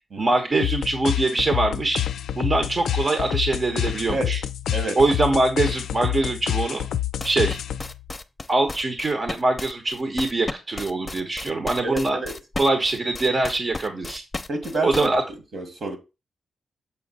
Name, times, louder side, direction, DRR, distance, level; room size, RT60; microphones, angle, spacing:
voice 1, 0.2-2.0 2.3-4.4 5.0-6.9 7.2-7.6 8.5-12.2 12.6-14.2 14.8-15.2, right 2 dB, 50° right, 1.0 m, -23 dB
sound 1, 0.6-8.0, left 11 dB, 90° left, 0.3 m, -27 dB
sound 2, 7.2-15.1, left 2 dB, 30° left, 0.6 m, -34 dB
voice 2, 11.8-12.3 14.5-15.1 15.5-16.0, right 2 dB, 65° right, 1.8 m, -28 dB
7.0 x 4.3 x 4.2 m
cardioid pair, 60°, 0 cm